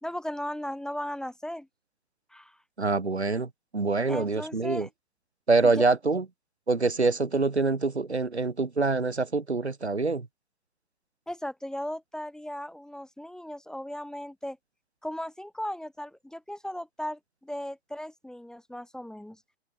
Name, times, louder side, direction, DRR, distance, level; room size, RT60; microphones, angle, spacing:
voice 1, 0.0-1.7 2.3-2.6 4.1-4.9 5.6-5.8 11.3-14.6 15.0-19.4, left 1 dB, ahead, 1.5 m, -37 dB
voice 2, 2.8-4.9 5.5-6.2 6.7-10.3, right 3 dB, 85° right, 1.9 m, -25 dB
figure-of-eight pair, 110°, 32 cm